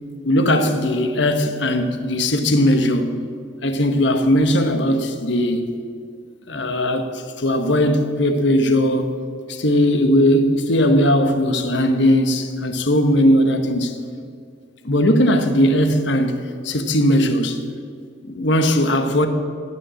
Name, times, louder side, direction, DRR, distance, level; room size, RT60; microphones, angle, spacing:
voice 1, 0.2-3.1 3.6-5.7 6.5-9.1 9.5-14.0 14.8-16.4 16.6-17.6 18.2-19.3, equal, 65° left, 1.2 m, -18 dB
18.0 x 9.8 x 7.6 m
head